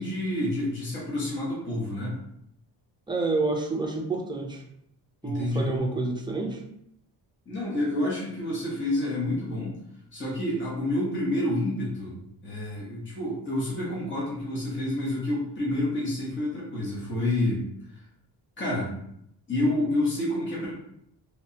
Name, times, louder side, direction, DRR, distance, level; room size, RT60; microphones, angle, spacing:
voice 1, 0.0-2.2 5.2-5.7 7.5-9.8 10.1-17.6 18.6-18.9 19.5-20.7, left 1 dB, 25° left, -6 dB, 1.2 m, -28 dB
voice 2, 3.1-4.6 5.2-6.6, right 3 dB, 10° right, 1 dB, 0.5 m, -28 dB
3.3 x 3.1 x 2.8 m, 0.75 s
cardioid pair, 130°, 43 cm